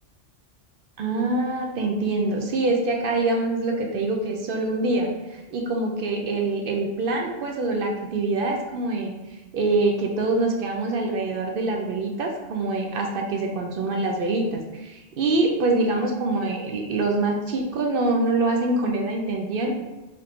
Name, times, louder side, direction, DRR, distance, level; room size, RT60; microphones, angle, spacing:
voice 1, 1.0-9.1 9.5-19.8, right 2 dB, 60° right, 1 dB, 0.6 m, -25 dB
3.5 x 2.5 x 4.1 m, 1.1 s
omnidirectional pair, 1.2 m